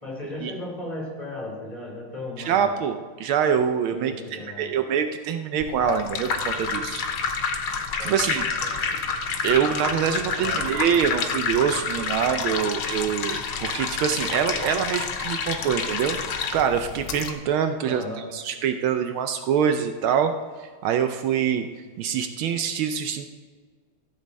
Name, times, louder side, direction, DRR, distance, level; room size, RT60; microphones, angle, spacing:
voice 1, 0.0-2.7 3.9-4.7 8.0-9.0 10.4-10.6 15.5-15.7 17.8-18.2, left 1 dB, 15° left, -4 dB, 3.4 m, -36 dB
voice 2, 2.4-7.1 8.0-8.8 9.4-16.2 16.5-18.0 18.3-20.3 20.6-21.7 22.0-23.3, right 8 dB, 80° right, 8 dB, 1.4 m, -25 dB
sound 1, 5.6-17.3, left 5 dB, 80° left, 1.8 m, -28 dB
14.5 x 7.5 x 4.2 m, 1.5 s
omnidirectional pair, 2.3 m